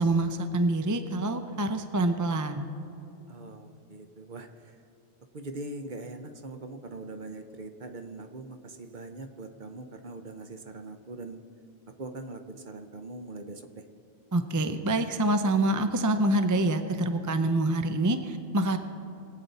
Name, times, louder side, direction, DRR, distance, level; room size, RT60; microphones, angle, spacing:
voice 1, 0.0-2.7 14.3-18.8, right 2 dB, 25° right, 7 dB, 0.4 m, -26 dB
voice 2, 3.3-4.8 5.3-11.4 12.0-13.8, right 2 dB, 45° right, 7 dB, 0.8 m, -42 dB
22.5 x 8.3 x 4.1 m, 2.8 s
omnidirectional pair, 1.2 m